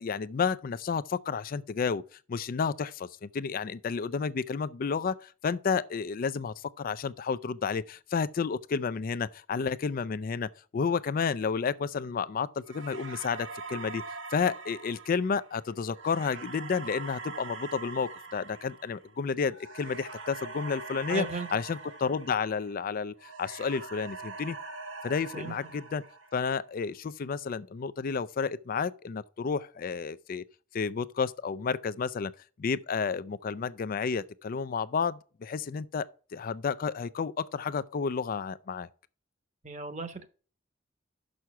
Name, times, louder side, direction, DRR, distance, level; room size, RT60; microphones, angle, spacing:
voice 1, 0.0-14.0 14.3-21.3 21.5-24.6 25.0-26.0 26.3-30.4 30.7-32.3 32.6-36.1 36.3-38.9, left 5 dB, 45° left, 0.4 m, -31 dB
sound 1, 12.7-22.9 23.2-26.6, right 4 dB, 70° right, 1.6 m, -43 dB
voice 2, 21.1-21.5 25.3-25.5 39.6-40.3, right 4 dB, 40° right, 1.1 m, -35 dB
6.3 x 5.7 x 5.8 m
head